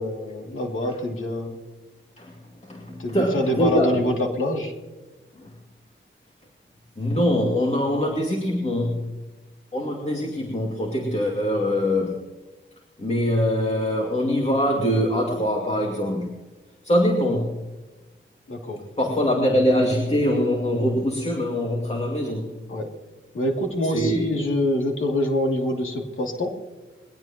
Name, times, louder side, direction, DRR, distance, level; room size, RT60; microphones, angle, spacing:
voice 1, 0.0-1.6 3.0-4.7 18.5-18.8 22.7-22.9 23.3-26.6, left 1 dB, 80° left, 1 dB, 2.8 m, -25 dB
voice 2, 2.6-4.0 5.4-5.5 7.0-9.1 9.7-12.2 13.0-16.4 16.8-17.5 19.0-22.5 23.8-24.3, equal, 35° left, -1 dB, 2.4 m, -23 dB
21.5 x 17.5 x 3.0 m, 1.2 s
wide cardioid pair, 85°, 20 cm